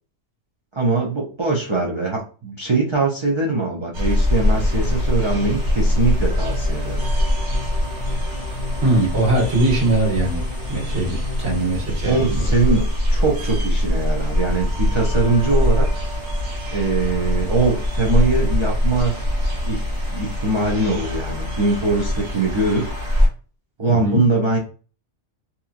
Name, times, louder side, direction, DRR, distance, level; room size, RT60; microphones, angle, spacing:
voice 1, 0.7-7.0 12.1-15.9 16.7-19.2 19.6-22.9 23.8-24.6, right 3 dB, 45° right, -3 dB, 0.4 m, -22 dB
sound 1, 3.9-23.3, left 1 dB, 80° right, 1.5 m, -22 dB
sound 2, 4.4-11.9, left 5 dB, 75° left, 1.0 m, -36 dB
voice 2, 8.8-10.4 10.7-12.4 23.9-24.2, right 2 dB, 65° right, -3 dB, 1.4 m, -21 dB
2.8 x 2.5 x 2.4 m, 0.37 s
omnidirectional pair, 1.2 m